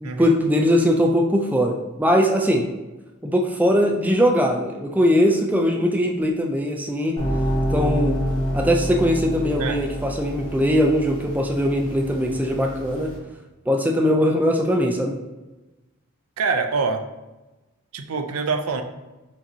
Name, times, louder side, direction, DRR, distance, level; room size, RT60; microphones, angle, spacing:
voice 1, 0.0-2.7 3.2-7.2 7.7-8.2 8.5-13.1 13.7-15.2, equal, 10° right, 2 dB, 0.3 m, -20 dB
sound 1, 7.2-13.2, equal, 25° left, 1.4 m, -27 dB
voice 2, 16.4-17.0 17.9-18.8, right 4 dB, 75° right, 6 dB, 0.4 m, -25 dB
5.9 x 2.6 x 2.8 m, 1.1 s
head